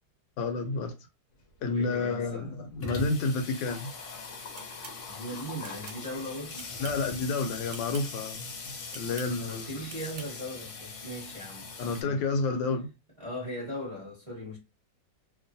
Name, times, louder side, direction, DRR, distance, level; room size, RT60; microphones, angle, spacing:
voice 1, 0.4-0.9 1.6-3.9 6.8-9.7 11.8-12.9, left 3 dB, 85° left, 1.3 m, -30 dB
Water tap faucet / Sink (filling or washing), 1.4-1.5 1.8-1.9 2.1-12.0, left 3 dB, 60° left, 0.8 m, -41 dB
voice 2, 1.6-2.5 5.1-6.7 9.2-12.2 13.2-14.6, equal, 25° right, 0.8 m, -39 dB
sound 1, 4.6-5.0 5.6-6.0 6.6-7.1 7.7-8.1 8.9-9.3 9.9-10.3, right 6 dB, 75° right, 1.1 m, -46 dB
2.9 x 2.1 x 2.6 m
omnidirectional pair, 1.9 m